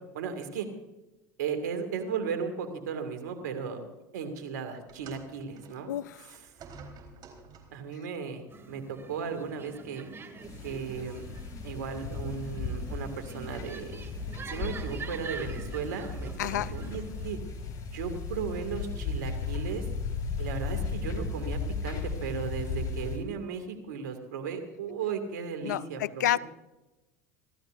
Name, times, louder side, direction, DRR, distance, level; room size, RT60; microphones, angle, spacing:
voice 1, 0.1-0.7 1.4-3.8 4.1-5.9 6.2-6.4 7.7-10.1 10.6-11.2 11.6-14.0 14.5-17.4 17.9-19.8 20.4-26.4, right 6 dB, 80° right, 2.5 m, -36 dB
sound 1, 4.9-7.9 8.9-9.1 9.9-10.0, right 4 dB, 45° right, 4.3 m, -50 dB
voice 2, 5.9-6.3 16.4-16.7 25.6-26.4, left 12 dB, 85° left, 0.5 m, -29 dB
sound 2, 8.5-17.3, right 4 dB, 25° right, 2.7 m, -45 dB
sound 3, 10.4-23.2, left 4 dB, 40° left, 5.6 m, -36 dB
29.5 x 13.5 x 2.7 m
hypercardioid pair, 85°, 9 cm